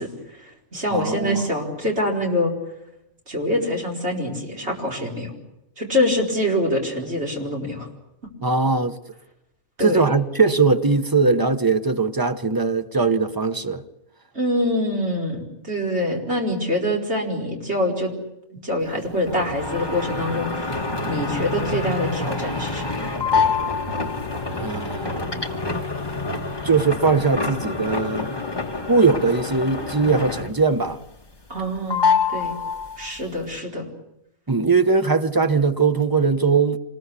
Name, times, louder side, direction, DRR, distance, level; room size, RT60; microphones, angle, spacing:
voice 1, 0.0-2.5 3.3-5.3 5.8-7.9 9.8-10.1 14.3-18.1 18.5-23.0 31.5-32.6 33.0-33.9, left 1 dB, 50° right, 4.8 m, -25 dB
voice 2, 0.9-1.4 8.4-9.0 9.8-13.8 24.5-25.4 26.6-28.3 28.9-31.0 34.5-36.8, right 4 dB, 20° right, 0.8 m, -20 dB
sound 1, 19.3-30.8 31.1-31.6 31.9-33.2, left 4 dB, 20° left, 1.4 m, -26 dB
26.5 x 20.5 x 8.3 m
omnidirectional pair, 1.4 m